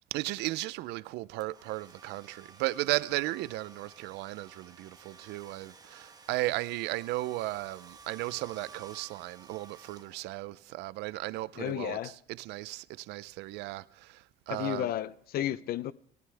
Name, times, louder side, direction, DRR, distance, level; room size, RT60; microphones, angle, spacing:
voice 1, 0.1-14.9, right 19 dB, 90° right, 0.5 m, -35 dB
Domestic sounds home sounds, 1.4-10.6, right 4 dB, 20° right, 1.3 m, -54 dB
voice 2, 11.6-12.2 14.5-15.9, left 12 dB, 65° left, 0.7 m, -33 dB
19.0 x 16.5 x 3.4 m
cardioid pair, 110°, 17 cm